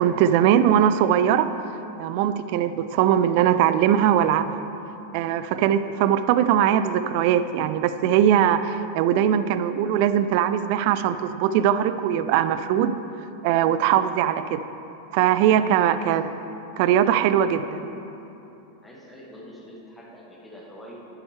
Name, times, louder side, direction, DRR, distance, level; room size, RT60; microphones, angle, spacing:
voice 1, 0.0-1.5 2.0-4.6 5.1-13.0 13.4-14.6 15.1-16.2 16.8-17.8, right 10 dB, 45° right, 12 dB, 0.4 m, -21 dB
voice 2, 18.8-21.2, equal, 10° left, -2 dB, 1.7 m, -44 dB
10.5 x 10.5 x 3.2 m, 2.9 s
figure-of-eight pair, 90°, 0 cm